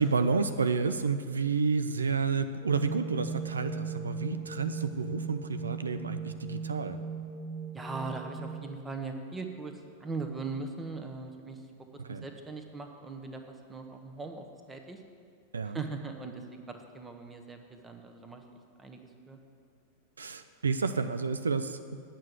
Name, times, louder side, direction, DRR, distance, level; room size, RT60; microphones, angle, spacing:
voice 1, 0.0-7.0 12.1-12.3 15.5-15.8 20.2-21.8, right 5 dB, 75° right, 10 dB, 0.4 m, -30 dB
sound 1, 2.6-8.6, right 4 dB, 40° right, 1.3 m, -38 dB
voice 2, 7.7-15.0 15.6-18.4 18.8-19.4, right 3 dB, 15° right, 4 dB, 1.0 m, -40 dB
9.1 x 6.0 x 8.1 m, 2.3 s
figure-of-eight pair, 90°, 0 cm